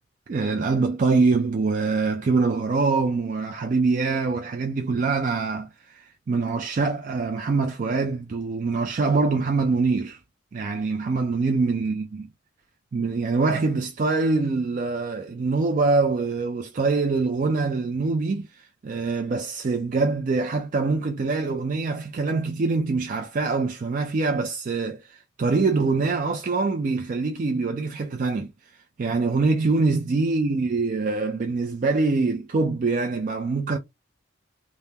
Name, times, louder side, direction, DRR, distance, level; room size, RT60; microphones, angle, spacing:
voice 1, 0.3-10.2 10.5-12.3 12.9-28.5 29.0-33.8, right 3 dB, 40° right, 0.4 m, -24 dB
3.4 x 2.1 x 2.7 m
head